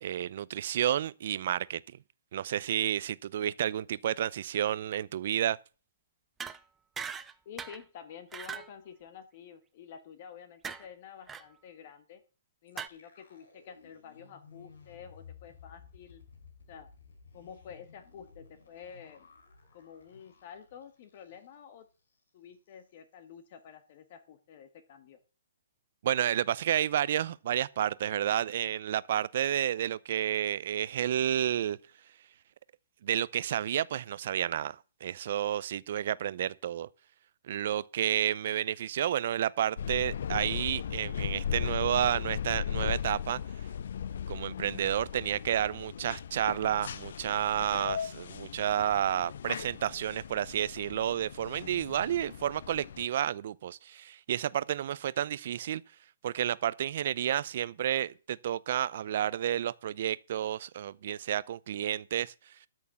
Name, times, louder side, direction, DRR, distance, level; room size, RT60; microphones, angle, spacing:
voice 1, 0.0-1.8 2.3-5.6 26.0-31.8 33.0-36.9 37.5-43.4 44.3-55.8 56.2-62.3, right 10 dB, 50° right, 0.6 m, -31 dB
sound 1, 6.4-6.6 7.0-7.3 7.6-7.8 8.3-8.7 10.6-10.9 11.3-11.4 12.8-12.9, right 7 dB, 10° right, 0.6 m, -39 dB
voice 2, 7.4-12.2 12.6-16.2 16.7-16.9 17.3-19.3 19.7-21.9 22.3-25.2, left 7 dB, 40° left, 1.5 m, -49 dB
sound 2, 12.7-21.7 22.0-22.2 22.5-22.9, left 5 dB, 80° left, 5.2 m, -56 dB
sound 3, 39.8-53.1, left 8 dB, 60° left, 0.5 m, -37 dB
13.0 x 6.5 x 7.1 m
hypercardioid pair, 160°, 0 cm